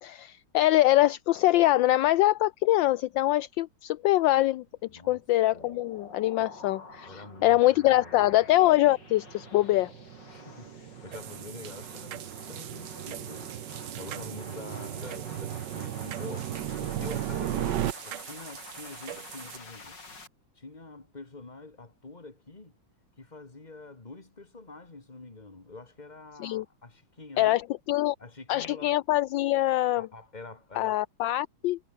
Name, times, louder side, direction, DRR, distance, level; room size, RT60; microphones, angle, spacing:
voice 1, 0.0-4.6 4.9-9.9 26.4-26.6 27.4-27.6 27.9-28.1 28.5-30.1 30.8-31.8, left 15 dB, 75° left, 1.2 m, -24 dB
voice 2, 4.9-5.2 5.5-5.8 6.4-6.5 7.1-8.4 10.3-13.5 13.8-20.0 20.6-22.8 23.2-27.6 28.2-28.9 30.0-31.0, left 3 dB, 20° left, 2.6 m, -46 dB
sound 1, 5.5-20.3, left 3 dB, 55° left, 4.7 m, -49 dB
sound 2, 6.8-17.9, right 12 dB, 65° right, 1.4 m, -37 dB
sound 3, 11.1-19.6, right 10 dB, 90° right, 2.1 m, -44 dB
omnidirectional pair, 2.3 m